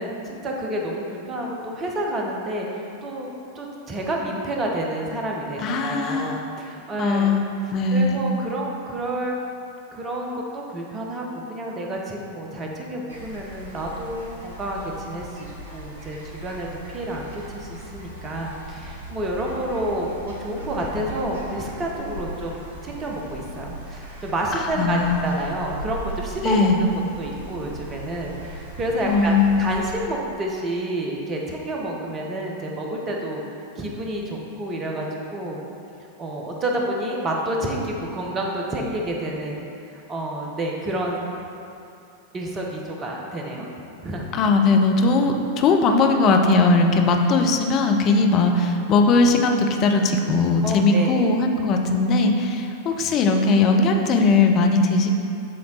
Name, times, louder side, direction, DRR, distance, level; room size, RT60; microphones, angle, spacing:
voice 1, 0.0-7.3 7.6-9.4 9.9-26.9 27.2-33.4 33.8-35.6 36.2-41.3 42.3-43.7 44.0-44.3 50.6-51.3, right 1 dB, 25° right, -1 dB, 0.8 m, -29 dB
voice 2, 5.6-6.5 7.0-8.4 24.6-25.2 26.4-26.8 29.1-29.8 44.3-55.1, left 3 dB, 35° left, 4 dB, 0.5 m, -19 dB
sound 1, 13.1-30.0, right 2 dB, 65° right, 1.0 m, -38 dB
7.5 x 3.5 x 3.9 m, 2.6 s
figure-of-eight pair, 90°, 0 cm